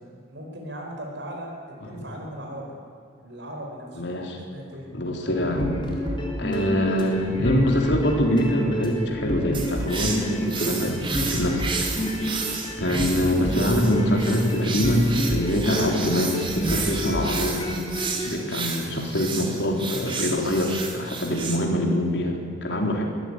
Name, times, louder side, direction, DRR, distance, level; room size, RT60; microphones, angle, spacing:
voice 1, 0.0-2.8 3.2-4.0 4.5-4.9 18.7-19.0, right 1 dB, 75° right, 0 dB, 4.9 m, -38 dB
voice 2, 4.0-4.4 4.9-5.8 6.4-11.7 12.8-17.6 18.2-23.0, equal, 75° left, 1 dB, 3.9 m, -24 dB
sound 1, 5.4-18.3, equal, 25° left, 3.9 m, -29 dB
sound 2, 9.5-21.6, right 4 dB, 25° right, 2.7 m, -32 dB
22.0 x 14.0 x 9.9 m, 2.4 s
head